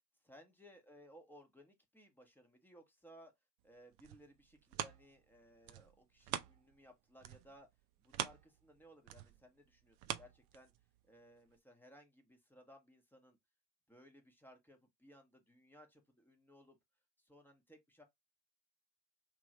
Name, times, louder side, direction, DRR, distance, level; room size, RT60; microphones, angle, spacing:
voice 1, 0.2-3.3 3.6-7.7 8.0-10.7 11.1-13.4 13.9-16.8 17.2-18.0, equal, 5° left, 0.8 m, -61 dB
sound 1, 3.7-6.9 7.2-11.0 11.5-11.6, right 12 dB, 45° right, 0.5 m, -45 dB
2.9 x 2.5 x 2.8 m
hypercardioid pair, 70°, 48 cm